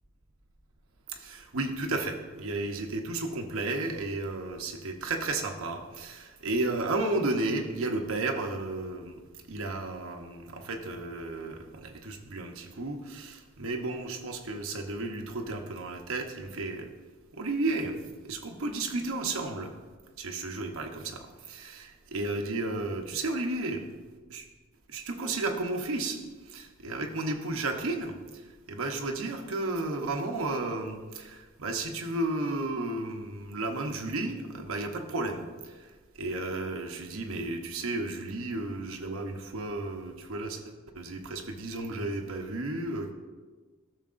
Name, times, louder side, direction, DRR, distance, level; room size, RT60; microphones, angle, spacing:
voice 1, 1.2-9.2 9.5-16.9 17.4-18.0 18.2-19.7 20.2-23.8 24.3-24.4 24.9-26.2 26.5-28.1 28.7-35.4 36.2-40.6 40.9-43.1, right 2 dB, 80° right, 4 dB, 0.9 m, -33 dB
13.0 x 6.5 x 2.6 m, 1.4 s
head